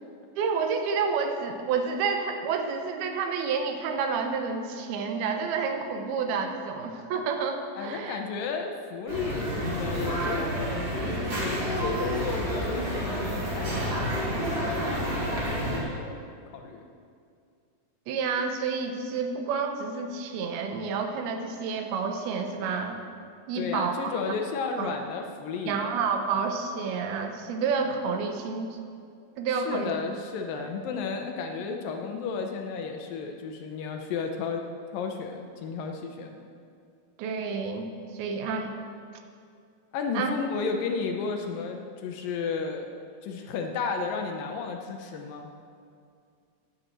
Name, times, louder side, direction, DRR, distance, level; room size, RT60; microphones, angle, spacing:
voice 1, 0.4-8.2 18.1-23.0 23.5-24.1 24.8-24.9 25.7-28.8 29.4-30.0 30.6-30.7 37.2-38.7 40.1-40.3, right 5 dB, 80° right, 5 dB, 2.8 m, -29 dB
voice 2, 7.8-10.6 11.1-16.2 16.5-16.8 23.6-26.0 29.7-34.6 34.9-36.4 39.9-42.9 43.2-45.5, left 5 dB, 75° left, 4 dB, 2.3 m, -33 dB
sound 1, 9.1-15.8, equal, 45° right, 3.5 m, -29 dB
10.0 x 8.0 x 7.5 m, 2.3 s
omnidirectional pair, 4.4 m